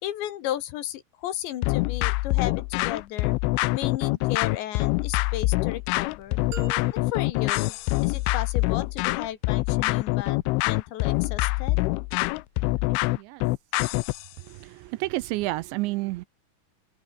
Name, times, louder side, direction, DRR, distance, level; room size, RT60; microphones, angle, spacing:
voice 1, 0.0-3.4 3.7-6.4 6.9-10.4 10.6-11.8, left 12 dB, 70° left, 3.7 m, -34 dB
sound 1, 1.6-14.3, left 23 dB, 85° left, 3.1 m, -25 dB
sound 2, 5.0-8.3 9.5-12.9, left 4 dB, 30° left, 4.6 m, -58 dB
sound 3, 6.5-8.6, right 8 dB, 50° right, 3.6 m, -44 dB
voice 2, 14.4-16.3, right 20 dB, 85° right, 2.7 m, -30 dB
open air
omnidirectional pair, 5.5 m